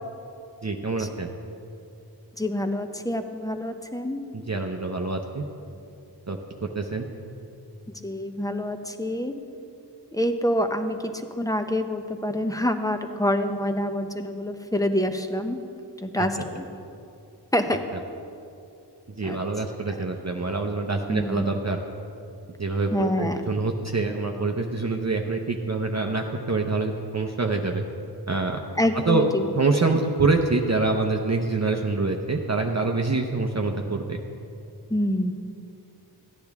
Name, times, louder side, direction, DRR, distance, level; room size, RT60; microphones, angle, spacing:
voice 1, 0.6-1.3 4.3-5.4 6.3-6.4 6.7-7.1 16.2-16.3 17.9-18.0 19.2-21.8 22.6-27.8 28.3-28.6 28.9-29.2 29.5-34.2, right 3 dB, 40° right, 2 dB, 0.7 m, -25 dB
voice 2, 2.4-4.2 8.0-9.3 10.1-11.0 11.4-15.6 16.0-16.7 17.5-17.8 19.2-19.4 21.1-21.5 22.9-23.4 28.8-29.4 34.9-35.3, left 1 dB, 10° left, 7 dB, 0.7 m, -26 dB
14.5 x 10.0 x 3.5 m, 2.7 s
wide cardioid pair, 40°, 41 cm